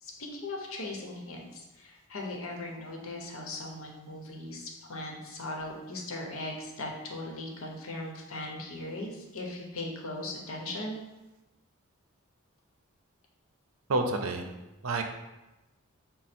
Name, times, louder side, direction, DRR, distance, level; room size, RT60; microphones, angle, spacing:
voice 1, 0.0-11.0, left 2 dB, 75° left, 0 dB, 0.8 m, -39 dB
voice 2, 13.9-14.5 14.8-15.0, right 2 dB, 80° right, 4 dB, 0.5 m, -28 dB
5.0 x 2.0 x 4.2 m, 1.0 s
head